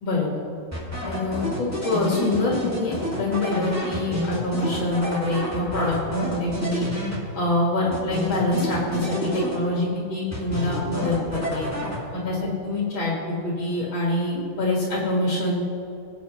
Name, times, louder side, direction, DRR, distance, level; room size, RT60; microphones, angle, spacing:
voice 1, 0.0-0.4 1.0-6.9 7.3-11.7 12.1-15.6, left 2 dB, 75° left, -4 dB, 2.6 m, -25 dB
sound 1, 0.7-7.6 7.9-9.9 10.3-12.4, equal, 10° right, 2.1 m, -29 dB
21.0 x 8.6 x 3.1 m, 2.9 s
omnidirectional pair, 2.1 m